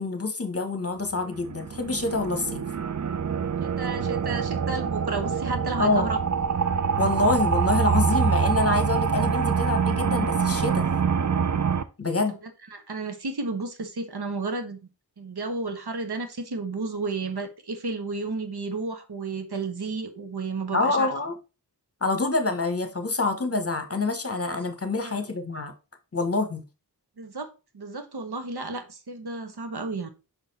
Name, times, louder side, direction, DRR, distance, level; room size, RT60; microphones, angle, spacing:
voice 1, 0.0-2.7 5.8-6.1 7.0-10.9 12.0-12.4 20.7-21.3 22.0-25.7 26.1-26.6, left 3 dB, 35° left, 1.2 m, -26 dB
sound 1, 1.2-11.8, right 6 dB, 45° right, 0.5 m, -25 dB
voice 2, 3.6-6.2 12.7-14.8 15.2-21.1 25.0-25.2 27.2-27.5 27.7-30.1, right 3 dB, 65° right, 1.1 m, -32 dB
5.7 x 4.1 x 4.1 m
wide cardioid pair, 55°, 43 cm